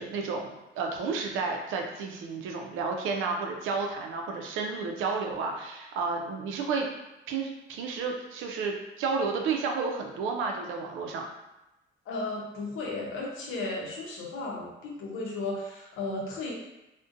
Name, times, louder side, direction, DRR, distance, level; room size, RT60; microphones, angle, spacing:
voice 1, 0.0-6.9 7.3-11.2, right 4 dB, 90° right, 2 dB, 0.4 m, -31 dB
voice 2, 12.1-16.5, left 2 dB, 85° left, -2 dB, 0.7 m, -34 dB
2.5 x 2.1 x 2.5 m, 0.96 s
cardioid pair, 90°, 20 cm